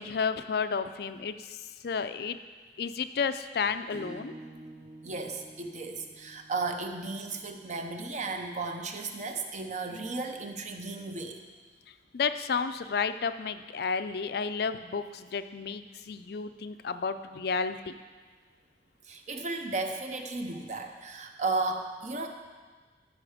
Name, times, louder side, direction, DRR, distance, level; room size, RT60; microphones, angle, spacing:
voice 1, 0.0-1.6 1.8-2.4 2.8-4.3 12.1-18.0, left 5 dB, 60° left, 11 dB, 0.4 m, -32 dB
Acoustic guitar / Strum, 3.9-9.1, right 1 dB, 60° right, 2.0 m, -50 dB
voice 2, 5.0-11.4 19.1-22.3, right 3 dB, 45° right, 5 dB, 0.8 m, -34 dB
13.5 x 5.5 x 5.0 m, 1.5 s
head